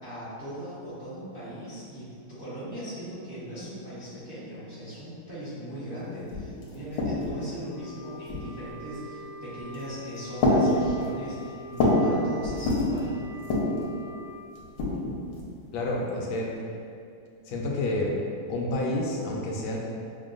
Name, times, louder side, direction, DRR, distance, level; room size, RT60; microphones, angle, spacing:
voice 1, 0.0-13.2, equal, 40° right, -13 dB, 0.8 m, -39 dB
sound 1, 6.0-6.1 6.3-7.5 8.3-8.8 9.6-9.9 10.4-12.1 12.4-13.0 13.4-13.8 14.5-15.5, left 1 dB, 65° left, 1.2 m, -26 dB
Wind instrument woodwind instrument, 7.7-14.4, left 1 dB, 65° right, 1.1 m, -44 dB
voice 2, 15.7-16.5 17.5-18.2 18.5-19.8, left 1 dB, 80° left, -2 dB, 1.5 m, -29 dB
6.5 x 2.2 x 2.5 m, 2.4 s
omnidirectional pair, 2.4 m